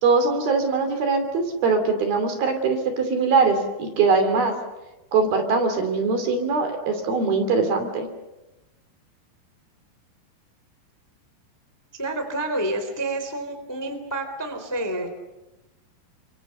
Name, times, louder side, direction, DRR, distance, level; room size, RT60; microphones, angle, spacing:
voice 1, 0.0-4.5 5.1-8.1, right 4 dB, 55° right, 6 dB, 4.4 m, -22 dB
voice 2, 12.0-15.1, right 1 dB, 5° left, 6 dB, 2.2 m, -29 dB
29.5 x 25.0 x 6.7 m, 1.0 s
omnidirectional pair, 5.6 m